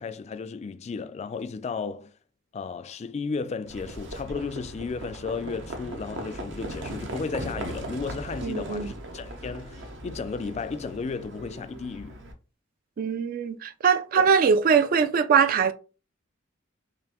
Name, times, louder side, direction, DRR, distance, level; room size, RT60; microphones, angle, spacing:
voice 1, 0.0-2.1 2.5-12.2 14.2-14.3, left 4 dB, 35° left, 0.3 m, -34 dB
Livestock farm animals working animals, 3.7-12.3, right 1 dB, 65° right, 0.7 m, -38 dB
voice 2, 8.4-8.9 13.0-15.7, right 6 dB, 45° right, 0.3 m, -22 dB
3.9 x 3.0 x 2.9 m
head